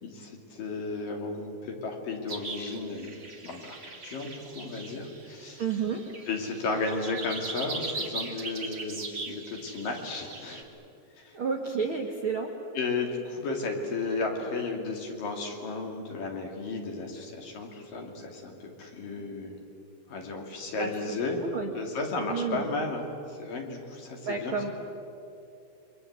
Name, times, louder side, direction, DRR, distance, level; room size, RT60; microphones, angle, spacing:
voice 1, 0.0-3.2 3.4-5.6 6.3-10.7 11.2-11.4 12.7-19.6 20.1-21.4 21.7-24.6, left 3 dB, 50° left, 2 dB, 4.1 m, -34 dB
sound 1, 2.3-10.6, right 3 dB, 50° right, 0.8 m, -40 dB
voice 2, 5.6-6.0 11.3-12.5 20.7-21.7 22.3-22.7 24.2-24.7, right 5 dB, 85° right, 1 dB, 1.1 m, -31 dB
28.0 x 24.5 x 8.2 m, 2.6 s
omnidirectional pair, 5.3 m